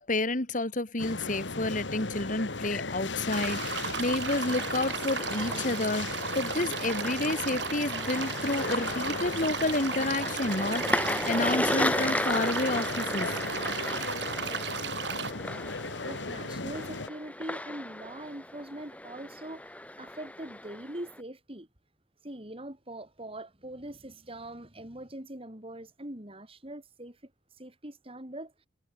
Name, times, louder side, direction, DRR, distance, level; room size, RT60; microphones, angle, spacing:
voice 1, 0.0-13.3, left 2 dB, 45° left, 2.4 m, -30 dB
sound 1, 1.0-17.1, left 3 dB, 85° left, 1.9 m, -37 dB
sound 2, 3.3-15.3, right 6 dB, 75° right, 5.5 m, -35 dB
sound 3, 4.3-21.2, left 1 dB, 10° left, 1.7 m, -35 dB
voice 2, 16.0-21.7 22.2-27.3 27.6-28.5, right 1 dB, 30° right, 4.0 m, -42 dB
head